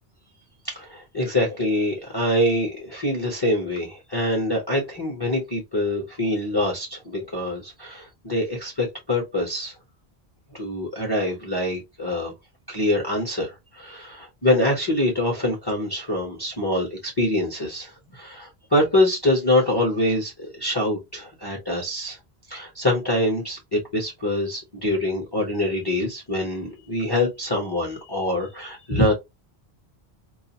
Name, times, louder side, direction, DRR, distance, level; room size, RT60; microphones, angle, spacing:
voice 1, 0.6-9.7 10.5-12.3 12.7-22.2 22.5-29.1, left 1 dB, 25° left, 0.8 m, -25 dB
2.4 x 2.3 x 2.8 m
omnidirectional pair, 1.1 m